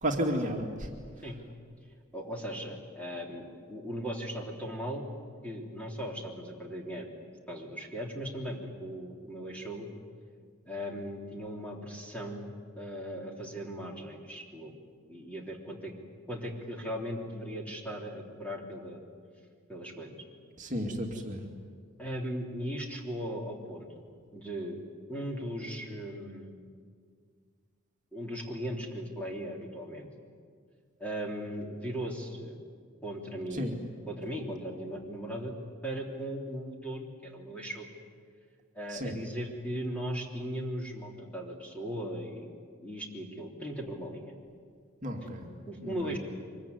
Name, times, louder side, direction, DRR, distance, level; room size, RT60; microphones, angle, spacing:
voice 1, 0.0-0.9 20.6-21.4 33.5-33.7 38.9-39.2 45.0-45.5 45.8-46.2, equal, 35° right, 1 dB, 2.5 m, -33 dB
voice 2, 2.1-5.1 5.4-7.1 7.5-9.9 10.7-12.5 12.8-14.7 15.1-15.9 16.3-19.0 19.7-20.2 22.0-24.0 24.3-24.8 25.1-26.6 28.1-30.1 31.0-32.6 33.0-33.7 34.1-35.5 35.8-37.9 38.8-42.6 42.8-44.3 45.7-46.2, equal, 5° left, 0 dB, 3.4 m, -38 dB
24.5 x 23.0 x 9.7 m, 2.1 s
head